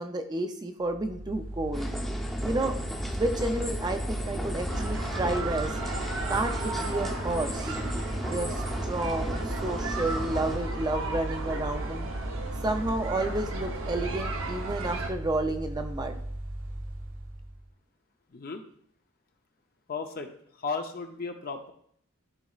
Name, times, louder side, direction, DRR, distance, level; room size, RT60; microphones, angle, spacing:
voice 1, 0.0-1.9 2.4-2.8 3.2-5.7 6.3-7.8 8.3-12.1 12.6-16.2, right 2 dB, 20° right, 6 dB, 0.5 m, -31 dB
Mechanical fan, 0.8-17.7, right 1 dB, 90° right, 1.5 m, -37 dB
sound 1, 1.7-10.6, equal, ahead, 0.8 m, -35 dB
sound 2, 4.7-15.1, right 2 dB, 65° right, 0.8 m, -35 dB
voice 2, 19.9-20.3 20.6-21.7, left 4 dB, 45° left, 4 dB, 0.6 m, -34 dB
12.5 x 4.2 x 2.4 m, 0.64 s
head